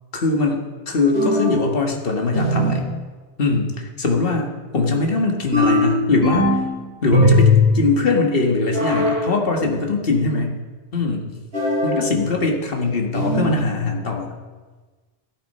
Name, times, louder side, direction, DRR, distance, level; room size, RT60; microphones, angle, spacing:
voice 1, 0.1-2.9 3.4-6.6 7.0-10.6 10.9-11.3 11.8-14.3, left 3 dB, 65° left, 1 dB, 1.9 m, -21 dB
sound 1, 1.1-1.7 2.3-2.9 5.5-6.7 7.1-7.8 8.7-9.2 11.5-12.0 13.1-13.6, left 1 dB, 70° right, 6.1 m, -18 dB
14.0 x 13.0 x 5.6 m, 1.3 s
omnidirectional pair, 1.0 m